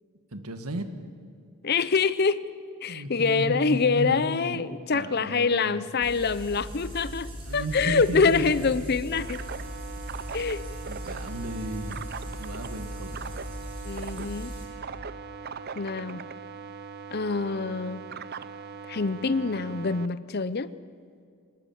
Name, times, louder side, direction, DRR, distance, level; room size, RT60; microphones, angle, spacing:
voice 1, 0.3-0.9 2.9-4.6 4.9-5.9 7.4-8.8 10.9-12.0 12.4-13.2, right 1 dB, 85° right, 8 dB, 1.8 m, -34 dB
voice 2, 1.6-2.4 2.8-9.4 10.3-10.6 13.8-14.6 15.8-16.2 17.1-18.0 18.9-20.7, left 4 dB, 45° left, 16 dB, 0.6 m, -25 dB
sound 1, 6.0-14.7, equal, 25° right, 4.5 m, -39 dB
sound 2, 9.1-20.1, right 5 dB, 45° right, 0.6 m, -40 dB
25.0 x 19.5 x 7.2 m, 2.2 s
head